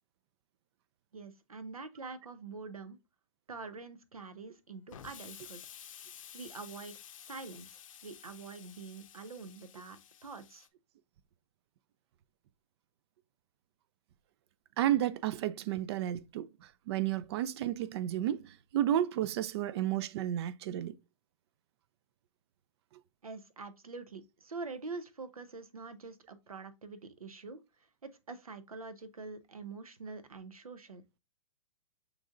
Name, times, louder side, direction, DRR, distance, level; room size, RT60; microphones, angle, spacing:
voice 1, 1.1-3.0 3.5-5.6 6.3-6.9 7.3-10.7 23.2-27.6 28.0-31.0, right 4 dB, 90° right, 0.7 m, -45 dB
Explosion, 4.9-10.7, left 9 dB, 65° left, 0.6 m, -52 dB
voice 2, 14.8-16.5 16.9-21.0, right 12 dB, 50° right, 0.4 m, -32 dB
6.1 x 3.3 x 2.5 m
hypercardioid pair, 115°, 18 cm